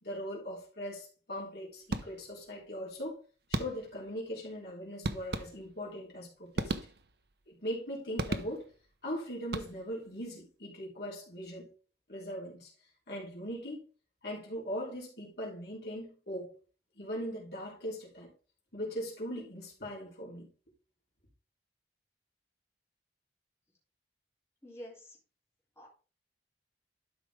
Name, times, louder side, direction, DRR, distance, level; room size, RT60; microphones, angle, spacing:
voice 1, 0.0-3.2 3.5-6.7 7.5-8.7 9.0-11.7 12.1-12.7 13.1-13.9 14.2-16.6 17.0-18.3 18.7-20.5, equal, 65° left, 3.5 m, -40 dB
sound 1, 1.9-2.5 3.5-4.1 5.0-5.9 6.5-7.3 8.2-8.9 9.4-10.1, right 2 dB, 65° right, 0.8 m, -36 dB
voice 2, 24.6-25.2 25.8-25.9, equal, 15° left, 3.3 m, -47 dB
12.0 x 5.2 x 3.6 m
head